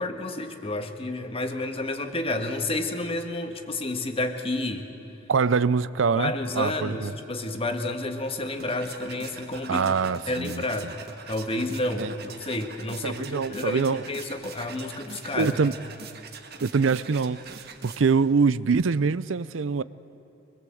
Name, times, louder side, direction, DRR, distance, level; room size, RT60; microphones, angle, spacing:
voice 1, 0.0-4.9 6.1-9.9 10.3-10.9 11.3-15.6, left 2 dB, 30° left, 6 dB, 1.5 m, -30 dB
voice 2, 5.3-7.1 9.7-10.9 12.0-12.1 13.0-14.0 15.4-15.7 16.6-19.8, right 5 dB, 90° right, 17 dB, 0.5 m, -24 dB
sound 1, 8.2-18.3, right 5 dB, 55° right, 1.6 m, -44 dB
23.5 x 21.5 x 7.8 m, 2.9 s
head